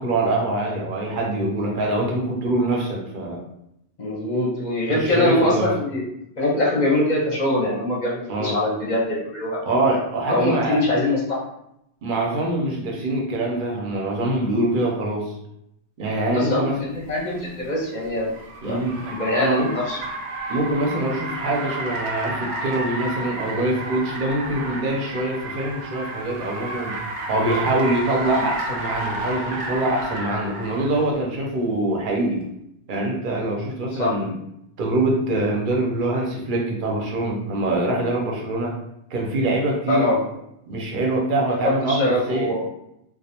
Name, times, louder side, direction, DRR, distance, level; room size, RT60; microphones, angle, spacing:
voice 1, 0.0-3.4 4.9-5.7 8.3-8.6 9.6-10.8 12.0-15.3 16.0-16.8 18.6-19.0 19.4-19.7 20.5-27.0 27.3-32.4 32.9-34.3 34.8-38.8 39.1-40.1 40.7-42.5, right 2 dB, 60° right, 0 dB, 0.6 m, -24 dB
voice 2, 4.0-6.0 6.4-9.6 10.3-11.4 16.3-18.3 18.6-18.8 19.1-20.0 33.9-34.1 39.9-40.2 41.6-42.7, left 1 dB, 50° left, -4 dB, 0.6 m, -23 dB
Car, 17.1-31.0, right 2 dB, 90° right, 0.9 m, -31 dB
2.3 x 2.1 x 2.8 m, 0.80 s
omnidirectional pair, 1.1 m